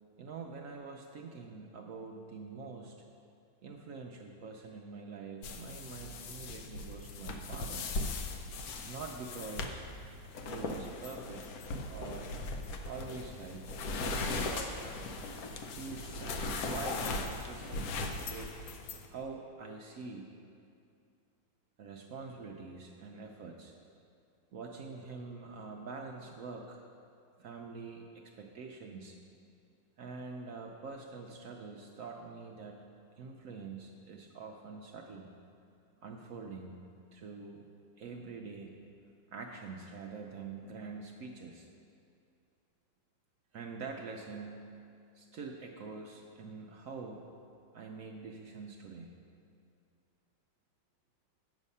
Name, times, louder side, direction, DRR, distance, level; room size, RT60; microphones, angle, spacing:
voice 1, 0.2-3.0 3.6-7.9 8.9-9.9 10.3-11.6 11.9-12.3 12.9-14.8 15.7-18.6 19.1-20.3 21.8-23.7 24.5-26.8 27.4-29.2 30.0-32.9 33.2-35.3 36.0-36.8 37.1-37.6 38.0-38.7 39.3-41.7 43.5-44.7 45.1-47.3 47.7-49.1, right 4 dB, 70° right, 1 dB, 0.7 m, -45 dB
sound 1, 5.4-19.1, left 3 dB, 65° left, 1.0 m, -39 dB
8.3 x 7.2 x 5.4 m, 2.5 s
omnidirectional pair, 2.0 m